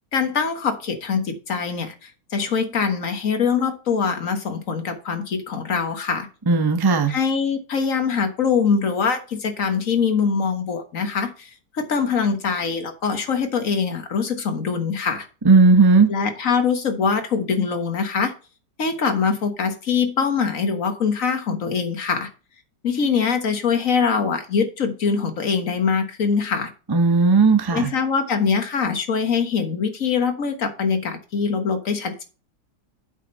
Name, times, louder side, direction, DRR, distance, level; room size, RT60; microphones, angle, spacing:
voice 1, 0.1-6.3 7.1-15.3 16.1-18.3 18.8-22.3 22.8-26.7 27.7-32.2, left 5 dB, 50° left, 7 dB, 1.7 m, -23 dB
voice 2, 6.5-7.1 15.4-16.1 26.9-27.9, right 4 dB, 30° right, 9 dB, 0.4 m, -15 dB
8.3 x 5.7 x 5.4 m, 0.35 s
omnidirectional pair, 1.9 m